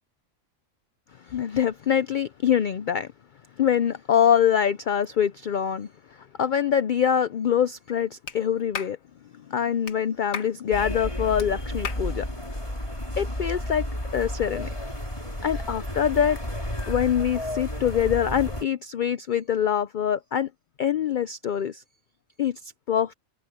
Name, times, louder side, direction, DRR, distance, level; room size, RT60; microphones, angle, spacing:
voice 1, 1.3-3.1 3.6-5.9 6.2-9.0 9.5-12.3 13.2-13.8 14.1-14.7 15.4-16.4 16.9-20.5 20.8-21.8 22.4-23.1, left 9 dB, 60° left, 0.5 m, -24 dB
Clapping, 8.3-8.4 8.7-9.0 9.9-10.0 10.3-10.5 11.4-11.5 11.8-12.1, left 6 dB, 90° left, 1.8 m, -33 dB
sound 1, 10.7-18.6, left 1 dB, 20° left, 4.5 m, -32 dB
omnidirectional pair, 1.4 m